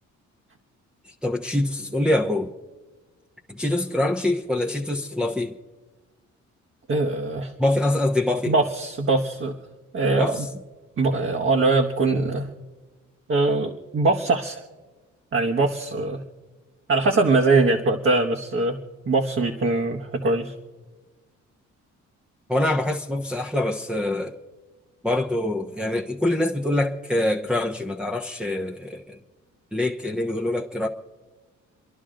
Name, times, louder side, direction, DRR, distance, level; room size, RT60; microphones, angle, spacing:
voice 1, 1.0-2.5 3.5-5.6 7.6-8.5 10.2-10.5 22.5-24.4 25.0-29.2 29.7-30.9, left 1 dB, 5° right, -1 dB, 0.9 m, -24 dB
voice 2, 6.9-7.5 8.5-9.5 9.9-10.4 11.0-12.5 13.3-14.6 15.3-16.2 16.9-18.8 19.1-20.5, right 3 dB, 40° right, 2 dB, 1.3 m, -22 dB
29.5 x 11.0 x 3.8 m, 1.3 s
cardioid pair, 90°, 30 cm